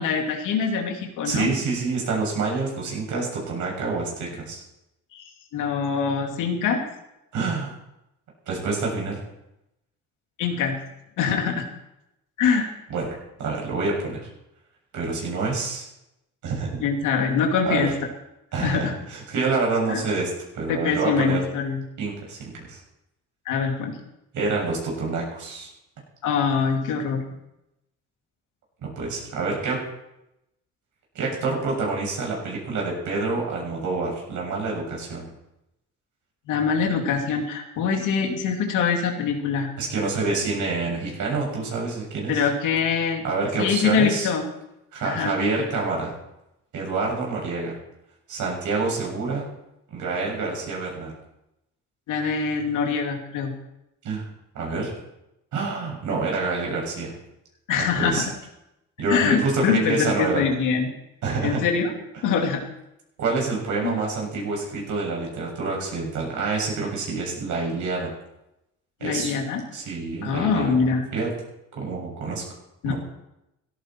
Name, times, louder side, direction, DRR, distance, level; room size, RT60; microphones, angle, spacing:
voice 1, 0.0-1.5 5.1-6.8 10.4-10.8 11.2-11.7 12.4-12.7 16.8-17.9 18.6-18.9 19.9-20.0 20.7-21.8 23.5-24.0 26.2-27.2 36.5-39.7 42.3-43.2 43.6-44.4 45.0-45.3 52.1-53.5 57.7-58.2 59.1-60.9 61.4-61.9 62.2-62.6 63.8-64.0 69.0-69.6 70.2-71.1 72.8-72.9, left 6 dB, 90° left, 2 dB, 2.6 m, -24 dB
voice 2, 1.2-4.6 7.3-7.7 8.5-9.2 12.9-13.1 13.4-14.3 14.9-15.8 16.4-16.9 17.6-17.9 18.5-21.4 22.0-22.8 24.3-25.7 28.8-29.8 31.1-35.3 39.8-42.4 43.2-44.3 44.9-46.1 46.7-47.8 48.3-49.5 49.9-51.1 54.0-54.2 54.5-54.9 55.5-57.1 57.7-58.2 59.0-60.4 61.2-61.6 63.2-68.1 69.0-69.3 69.7-70.9 71.1-71.3 71.8-72.4 72.8-72.9, right 3 dB, 75° right, -1 dB, 7.4 m, -27 dB
16.0 x 14.5 x 4.5 m, 0.87 s
cardioid pair, 90°, 30 cm